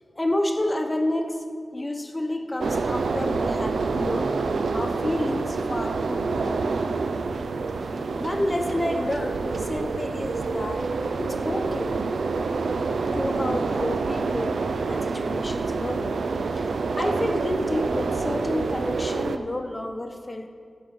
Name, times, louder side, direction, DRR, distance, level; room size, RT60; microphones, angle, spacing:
voice 1, 0.2-1.4 1.7-4.3 4.7-6.7 8.2-10.9 11.2-11.9 13.1-14.6 14.9-16.2 16.6-16.7 17.0-20.5, left 1 dB, 20° left, 5 dB, 0.9 m, -29 dB
sound 1, 2.6-19.4, right 4 dB, 85° right, 0.5 m, -27 dB
15.5 x 5.3 x 7.6 m, 2.3 s
wide cardioid pair, 105°, 0 cm